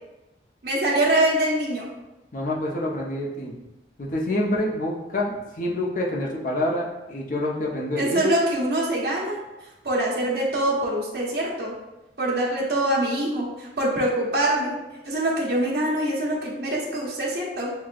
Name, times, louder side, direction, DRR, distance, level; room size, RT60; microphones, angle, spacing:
voice 1, 0.6-1.9 8.0-9.4 9.8-11.7 12.2-14.8 15.0-17.7, right 1 dB, 60° right, -4 dB, 0.9 m, -24 dB
voice 2, 2.3-3.5 4.0-8.2, left 1 dB, 50° left, -2 dB, 0.6 m, -27 dB
6.3 x 2.2 x 2.4 m, 1.0 s
head